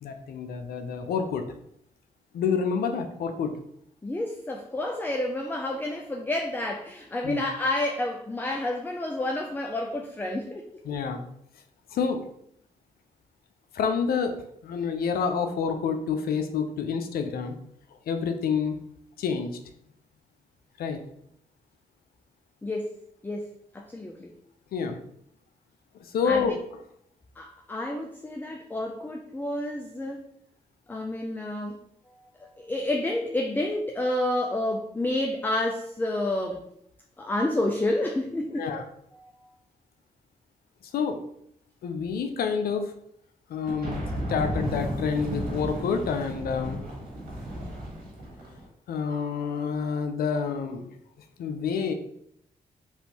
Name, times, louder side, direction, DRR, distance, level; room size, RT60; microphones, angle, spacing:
voice 1, 0.0-1.5 2.3-3.6 7.2-7.4 10.8-11.2 11.9-12.2 13.7-14.4 14.6-17.6 18.1-18.8 19.2-19.6 20.8-21.0 24.7-25.0 26.1-26.6 38.6-38.8 40.9-41.2 41.8-42.9 43.5-46.8 48.9-50.9 51.4-51.9, left 6 dB, 75° left, 7 dB, 0.5 m, -28 dB
voice 2, 4.0-10.7 22.6-22.9 23.2-23.5 23.7-24.3 26.3-26.5 27.4-30.2 30.9-31.8 32.4-36.6 37.2-38.7 39.2-39.3, left 1 dB, 10° left, 2 dB, 0.4 m, -29 dB
sound 1, 43.7-48.7, equal, 75° right, 1.3 m, -34 dB
3.3 x 2.6 x 2.8 m, 0.71 s
supercardioid pair, 55°, 16 cm